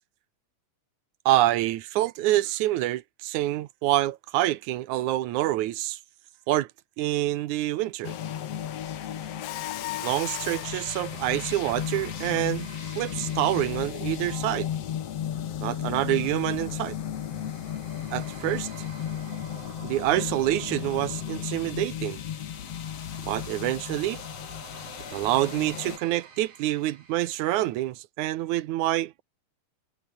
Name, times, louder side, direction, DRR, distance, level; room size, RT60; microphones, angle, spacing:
voice 1, 1.3-6.0 6.5-6.7 7.0-8.1 10.0-12.7 13.0-14.7 15.6-17.0 18.1-18.7 19.8-22.2 23.2-24.2 25.1-29.2, right 15 dB, 70° right, 2.1 m, -26 dB
sound 1, 8.0-26.0, left 10 dB, 55° left, 2.2 m, -34 dB
sound 2, 9.2-27.9, right 5 dB, 85° right, 6.3 m, -51 dB
Mechanisms, 9.4-10.9, left 20 dB, 80° left, 2.0 m, -36 dB
omnidirectional pair, 3.9 m